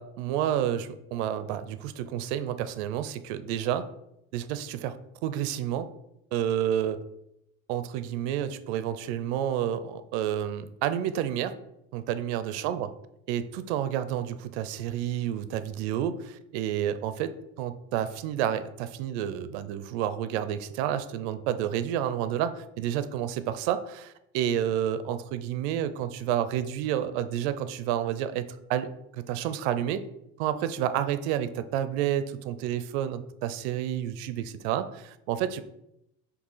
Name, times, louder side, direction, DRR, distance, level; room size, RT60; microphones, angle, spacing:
voice 1, 0.0-3.9 4.3-5.0 5.2-5.9 6.3-7.0 7.7-11.6 11.9-12.9 13.3-30.0 30.4-35.6, right 10 dB, 75° right, 12 dB, 0.6 m, -30 dB
6.5 x 2.8 x 5.5 m, 0.81 s
cardioid pair, 165°, 34 cm